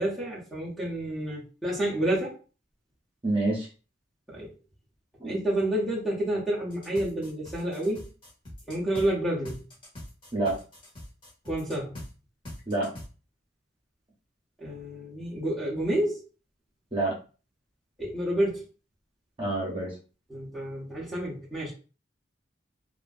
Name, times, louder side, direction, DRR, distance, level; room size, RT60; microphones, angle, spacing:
voice 1, 0.0-2.4 4.3-4.5 5.2-8.0 8.7-9.6 11.4-11.9 14.6-16.2 18.0-18.6 20.3-21.7, right 1 dB, ahead, -6 dB, 0.7 m, -29 dB
voice 2, 3.2-3.7 5.2-5.4 10.3-10.6 12.7-12.9 16.9-17.2 19.4-20.0, right 2 dB, 30° right, -3 dB, 0.9 m, -27 dB
sound 1, 6.7-9.1 9.4-12.1 12.4-13.1, left 1 dB, 25° left, 1.1 m, -43 dB
2.8 x 2.4 x 2.5 m, 0.35 s
head